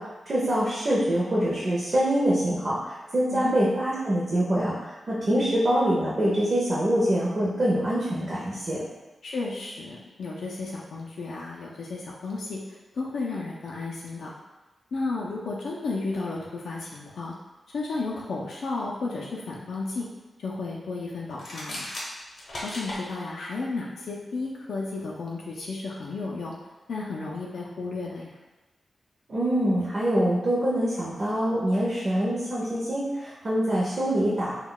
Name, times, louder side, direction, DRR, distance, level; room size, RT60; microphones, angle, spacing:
voice 1, 0.0-8.8 29.3-34.5, right 1 dB, 40° right, -7 dB, 0.5 m, -25 dB
voice 2, 9.2-14.3 14.9-17.4 17.7-20.1 20.4-21.9 22.6-26.5 26.9-28.4, left 3 dB, 80° left, -3 dB, 0.4 m, -33 dB
sound 1, 21.3-23.0, left 1 dB, 50° left, 0.7 m, -36 dB
2.2 x 2.1 x 3.7 m, 1.1 s
wide cardioid pair, 170°, 0 cm